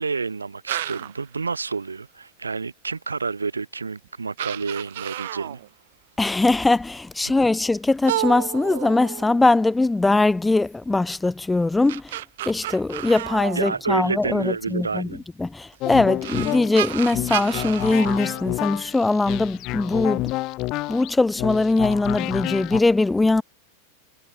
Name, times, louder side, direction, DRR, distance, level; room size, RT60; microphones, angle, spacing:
voice 1, 0.0-5.6 13.6-15.2, right 4 dB, 75° right, 3.8 m, -29 dB
sound 1, 0.7-1.2 3.3-3.4 4.0-4.1 4.4-5.7 8.0-9.7 11.6-14.3 15.7-15.8 16.2-19.1, right 14 dB, 55° right, 2.6 m, -31 dB
voice 2, 6.2-12.2 12.4-15.1 15.4-20.3 20.9-23.4, left 2 dB, 10° left, 1.0 m, -21 dB
sound 2, 15.8-22.8, left 20 dB, 40° left, 7.0 m, -29 dB
figure-of-eight pair, 90°, 0 cm